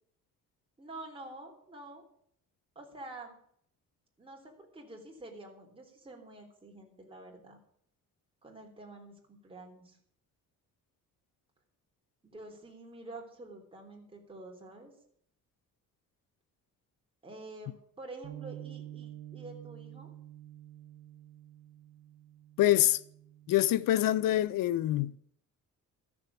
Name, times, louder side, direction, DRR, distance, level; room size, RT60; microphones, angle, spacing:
voice 1, 0.8-2.0 2.7-3.3 4.2-7.6 8.4-10.0 12.2-14.9 17.2-20.1, right 2 dB, 15° right, 3.3 m, -48 dB
Bass guitar, 18.2-24.5, right 12 dB, 65° right, 1.1 m, -49 dB
voice 2, 22.6-23.0 23.5-25.1, left 13 dB, 85° left, 0.6 m, -25 dB
13.5 x 7.2 x 8.4 m
cardioid pair, 170°, 32 cm